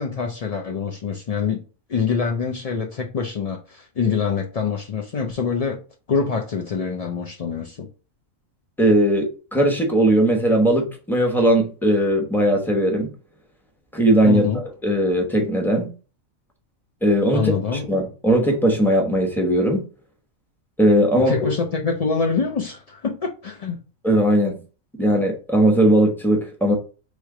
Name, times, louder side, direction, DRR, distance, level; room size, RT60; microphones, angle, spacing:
voice 1, 0.0-1.6 1.9-5.8 6.1-7.9 14.2-14.6 17.3-17.9 21.1-23.8, left 5 dB, 80° left, 0.3 m, -25 dB
voice 2, 8.8-13.1 13.9-14.4 14.8-15.9 17.0-19.9 20.8-21.3 24.0-24.6 25.0-26.7, right 1 dB, ahead, 0.9 m, -18 dB
3.3 x 3.2 x 4.8 m
omnidirectional pair, 1.4 m